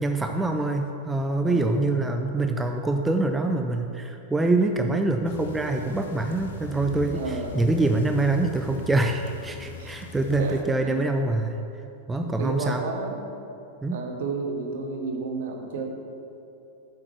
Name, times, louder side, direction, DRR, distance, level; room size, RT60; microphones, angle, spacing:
voice 1, 0.0-11.6 12.1-12.8 13.8-14.0, right 2 dB, 10° right, 5 dB, 0.4 m, -25 dB
voice 2, 1.4-1.7 7.1-7.6 9.8-9.9 10.4-11.1 12.1-13.2 13.9-15.8, right 4 dB, 55° right, 3 dB, 1.2 m, -32 dB
sound 1, 5.2-10.6, left 6 dB, 60° left, 0.6 m, -41 dB
8.0 x 7.5 x 4.8 m, 2.7 s
figure-of-eight pair, 90°, 0 cm